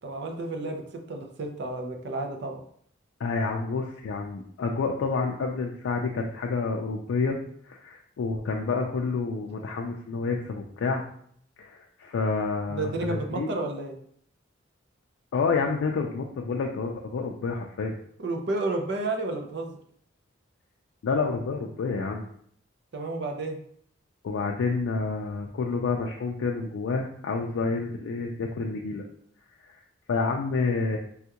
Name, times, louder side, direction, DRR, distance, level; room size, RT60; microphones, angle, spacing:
voice 1, 0.0-2.6 12.7-14.0 18.2-19.8 22.9-23.6, right 2 dB, 60° right, 3 dB, 0.5 m, -31 dB
voice 2, 3.2-7.4 7.6-11.0 11.6-13.5 15.3-17.9 21.0-22.3 24.2-29.0 30.1-31.0, left 4 dB, 85° left, 1 dB, 0.3 m, -29 dB
3.4 x 2.3 x 2.8 m, 0.63 s
head